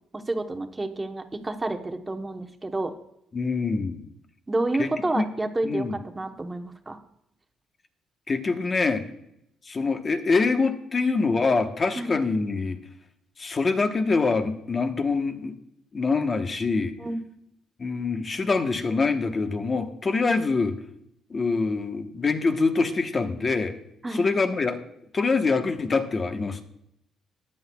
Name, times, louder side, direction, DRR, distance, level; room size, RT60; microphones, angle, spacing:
voice 1, 0.1-2.9 4.5-7.0 12.0-12.1 17.0-17.2 24.0-24.2, right 2 dB, 20° right, 6 dB, 1.0 m, -29 dB
voice 2, 3.3-4.0 4.8-4.9 5.1-5.3 5.6-6.0 8.3-9.0 9.7-12.8 13.4-15.5 15.9-16.9 17.8-20.7 21.3-23.8 24.1-24.8 25.1-26.6, left 4 dB, 35° left, 7 dB, 1.1 m, -25 dB
14.0 x 9.8 x 2.3 m, 0.79 s
cardioid pair, 90°, 0 cm